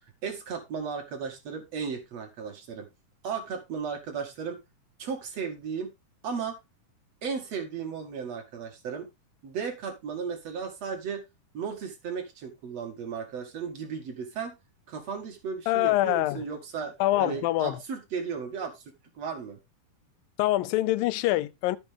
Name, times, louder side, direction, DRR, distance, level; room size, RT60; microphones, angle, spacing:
voice 1, 0.2-2.9 3.2-4.6 5.0-5.9 6.2-6.6 7.2-9.1 9.4-11.2 11.5-14.5 14.9-16.9 17.2-18.8 19.2-19.6, right 6 dB, 55° right, 2.7 m, -35 dB
voice 2, 15.7-16.5 17.0-17.8 20.4-21.8, left 16 dB, 85° left, 2.4 m, -25 dB
12.0 x 7.1 x 3.5 m
omnidirectional pair, 3.9 m